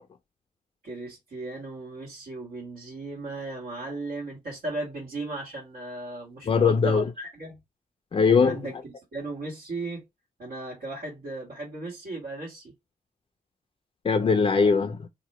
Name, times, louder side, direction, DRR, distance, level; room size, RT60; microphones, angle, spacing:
voice 1, 0.8-7.6 8.4-10.0 10.4-12.7, right 2 dB, 85° right, 1.5 m, -36 dB
voice 2, 6.5-7.1 8.1-8.6 14.0-15.1, left 5 dB, 35° left, 0.4 m, -21 dB
2.9 x 2.1 x 4.1 m
cardioid pair, 75°, 15 cm